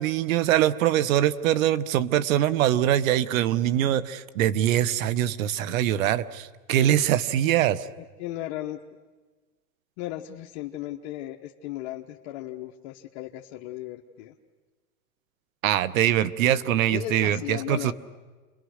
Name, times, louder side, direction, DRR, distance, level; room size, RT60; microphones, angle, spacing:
voice 1, 0.0-7.9 15.6-17.9, right 11 dB, 65° right, 16 dB, 1.2 m, -23 dB
voice 2, 8.0-8.8 10.0-14.3 16.9-17.9, left 14 dB, 50° left, 1 dB, 1.2 m, -36 dB
29.5 x 22.0 x 6.5 m, 1.3 s
supercardioid pair, 145°, 43 cm